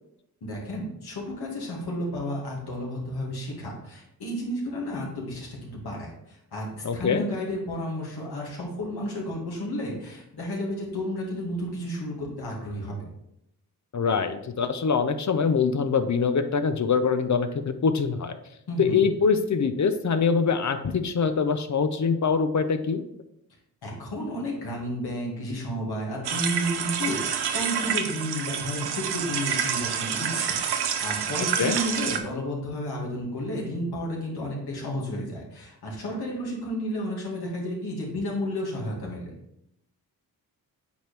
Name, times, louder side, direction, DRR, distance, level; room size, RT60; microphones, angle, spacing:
voice 1, 0.4-13.0 18.7-19.0 23.8-39.3, equal, 85° left, -3 dB, 2.3 m, -32 dB
voice 2, 6.8-7.2 13.9-18.4 18.8-23.0 31.6-31.8, left 5 dB, 50° left, 9 dB, 0.7 m, -24 dB
sound 1, 26.2-32.2, right 7 dB, 85° right, 0.8 m, -28 dB
8.3 x 4.5 x 3.3 m, 0.79 s
cardioid pair, 65°, 38 cm